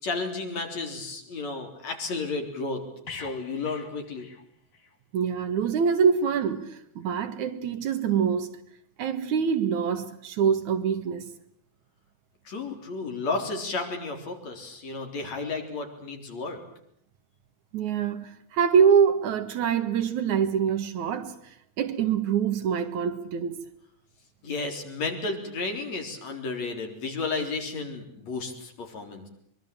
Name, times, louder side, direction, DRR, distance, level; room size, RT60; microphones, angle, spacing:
voice 1, 0.0-2.8 3.1-4.3 12.4-16.6 24.4-29.3, left 3 dB, 65° left, 5.2 m, -32 dB
sound 1, 3.1-5.0 5.3-5.5, left 4 dB, 35° left, 1.8 m, -44 dB
voice 2, 5.1-8.5 9.0-11.3 17.7-21.3 21.8-23.6, right 7 dB, 80° right, 3.1 m, -25 dB
23.5 x 23.5 x 8.9 m
omnidirectional pair, 3.3 m